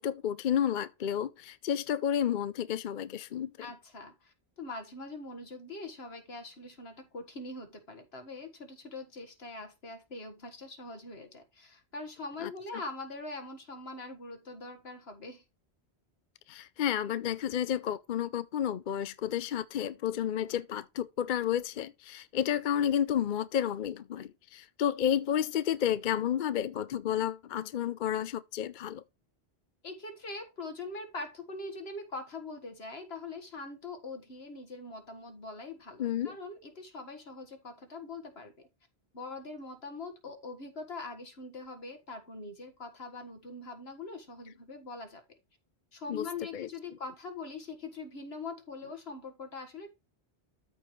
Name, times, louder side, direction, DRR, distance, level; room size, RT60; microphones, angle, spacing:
voice 1, 0.0-3.5 12.4-12.5 16.5-29.0 36.0-36.4 46.1-46.3 46.5-46.7, left 9 dB, 55° left, 0.6 m, -31 dB
voice 2, 3.6-15.4 29.8-38.7 39.1-45.2 45.9-49.9, left 3 dB, 75° left, 1.8 m, -43 dB
13.5 x 4.8 x 3.1 m
omnidirectional pair, 1.1 m